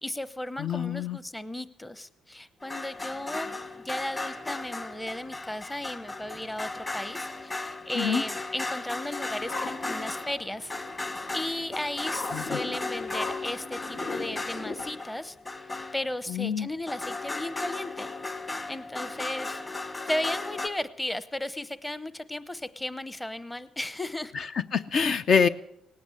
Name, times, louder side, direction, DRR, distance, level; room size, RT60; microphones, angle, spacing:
voice 1, 0.0-10.7 11.3-15.4 15.9-18.1 18.7-19.6 20.1-24.3, left 1 dB, 10° left, 14 dB, 0.8 m, -35 dB
voice 2, 0.6-1.2 8.0-8.2 12.3-12.6 16.3-16.7 24.3-25.5, left 6 dB, 55° left, 11 dB, 0.6 m, -26 dB
sound 1, 2.6-16.4 16.9-20.7, left 2 dB, 25° left, 1.6 m, -36 dB
sound 2, 9.3-14.9, left 3 dB, 75° left, 2.6 m, -39 dB
18.5 x 9.5 x 8.2 m, 0.75 s
cardioid pair, 95°, 0 cm